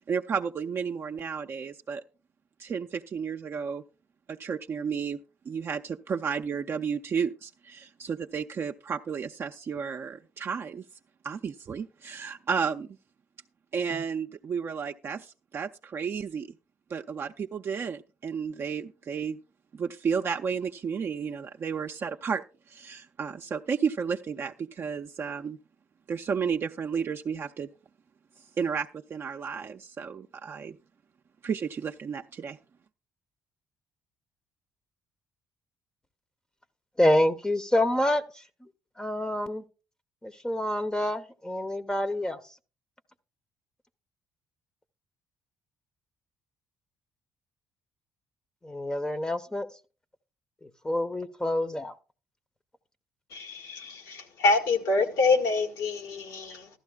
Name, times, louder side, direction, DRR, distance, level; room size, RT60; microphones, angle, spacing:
voice 1, 0.1-2.0 2.6-3.8 4.3-5.2 5.5-10.8 11.2-12.9 13.7-16.5 16.9-19.4 19.7-25.6 26.1-27.7 28.6-30.8 31.4-32.6, right 6 dB, 45° right, 0.5 m, -32 dB
voice 2, 37.0-38.7 39.0-39.6 40.2-42.4 48.6-49.7 50.6-51.9, left 1 dB, 15° left, 0.7 m, -27 dB
voice 3, 53.3-56.7, left 3 dB, 85° left, 1.8 m, -26 dB
14.5 x 12.5 x 2.3 m
cardioid pair, 90°, 6 cm